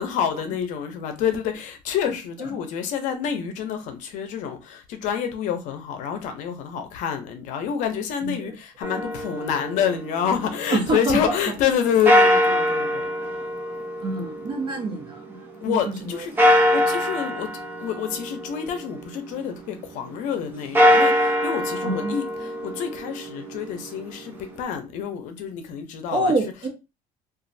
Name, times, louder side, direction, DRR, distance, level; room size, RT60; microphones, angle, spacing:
voice 1, 0.0-13.1 15.6-17.5 17.8-26.5, left 8 dB, 65° left, 0.6 m, -28 dB
sound 1, 8.8-10.9 12.0-15.4 16.4-19.3 20.6-24.6, equal, 15° right, 0.7 m, -23 dB
voice 2, 10.7-11.4 14.0-15.4 15.6-16.0 21.8-22.2 26.1-26.7, right 2 dB, 35° right, 1.0 m, -26 dB
3.0 x 2.4 x 2.6 m
cardioid pair, 155°, 14 cm